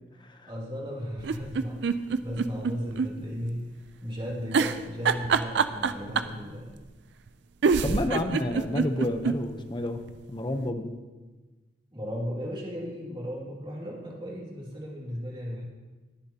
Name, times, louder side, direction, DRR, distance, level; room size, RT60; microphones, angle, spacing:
voice 1, 0.5-3.7 4.0-6.7 7.7-8.0 10.6-10.8 11.9-15.6, equal, 30° right, -3 dB, 2.3 m, -36 dB
sound 1, 1.2-3.1 3.4-3.5 4.5-6.4 7.3-7.4 7.6-9.4 9.8-9.9 10.1-10.2, right 5 dB, 65° right, 0.4 m, -25 dB
voice 2, 7.8-10.0 10.3-10.9, left 1 dB, 25° left, 7 dB, 0.8 m, -30 dB
20.0 x 7.4 x 2.9 m, 1.2 s
head